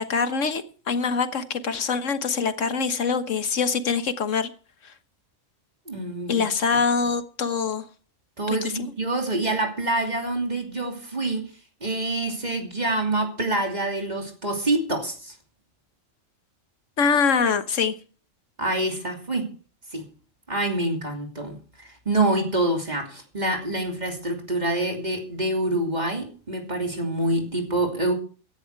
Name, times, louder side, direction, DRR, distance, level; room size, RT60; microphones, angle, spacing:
voice 1, 0.0-4.5 6.3-7.8 8.5-8.9 17.0-17.9, left 5 dB, 70° left, 1.6 m, -24 dB
voice 2, 5.9-6.8 8.4-11.5 11.8-15.4 18.6-19.5 19.9-20.1 20.5-28.1, right 2 dB, 30° right, 2.9 m, -26 dB
16.0 x 11.5 x 4.7 m
omnidirectional pair, 1.4 m